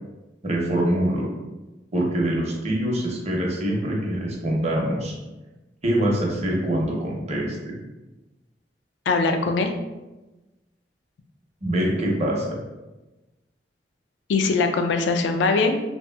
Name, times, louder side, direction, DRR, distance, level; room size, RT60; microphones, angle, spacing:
voice 1, 0.4-1.3 1.9-5.1 5.8-7.8 11.6-12.6, right 1 dB, 40° right, -2 dB, 0.6 m, -24 dB
voice 2, 9.1-9.7 14.3-15.8, left 4 dB, 85° left, 6 dB, 0.3 m, -21 dB
2.8 x 2.7 x 2.2 m, 1.1 s
head